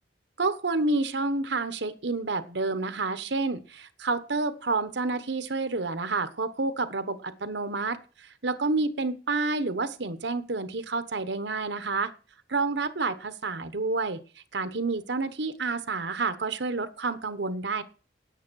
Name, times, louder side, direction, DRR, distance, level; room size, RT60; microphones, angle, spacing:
voice 1, 0.4-12.1 12.5-14.2 14.5-17.8, right 3 dB, 80° right, 12 dB, 1.1 m, -29 dB
9.4 x 9.0 x 6.3 m, 0.38 s
head